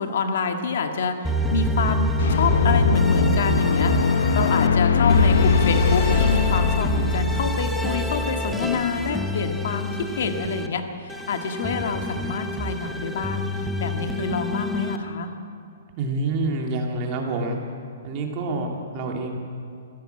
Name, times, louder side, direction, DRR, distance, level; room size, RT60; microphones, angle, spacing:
voice 1, 0.0-15.3, left 5 dB, 50° left, 5 dB, 1.9 m, -27 dB
sound 1, 1.2-4.7 5.1-10.7 11.1-15.0, equal, ahead, 0.8 m, -27 dB
sound 2, 2.2-8.9, left 5 dB, 90° left, 1.0 m, -21 dB
voice 2, 16.0-17.6 18.0-19.4, right 2 dB, 25° right, 1 dB, 2.3 m, -27 dB
25.5 x 16.0 x 7.9 m, 2.4 s
hypercardioid pair, 180°, 0 cm